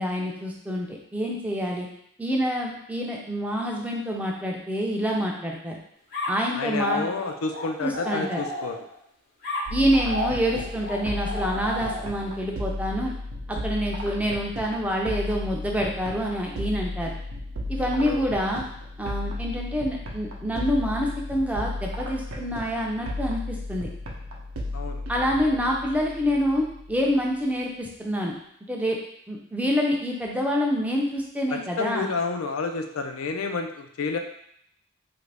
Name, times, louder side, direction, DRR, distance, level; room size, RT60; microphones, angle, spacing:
voice 1, 0.0-1.9 2.2-5.8 6.3-7.0 7.8-8.4 9.7-13.1 13.5-17.1 17.7-18.6 19.0-23.9 25.1-28.3 28.7-29.0 29.3-32.1, equal, 5° right, -1 dB, 0.4 m, -27 dB
sound 1, 6.1-9.0 9.4-12.3, left 1 dB, 45° left, 0.8 m, -33 dB
voice 2, 6.5-8.8 17.9-18.2 24.7-25.0 31.5-34.2, left 4 dB, 75° left, 5 dB, 0.4 m, -30 dB
sound 2, 9.7-27.3, left 1 dB, 75° right, 0.6 m, -34 dB
3.0 x 2.5 x 3.3 m, 0.70 s
head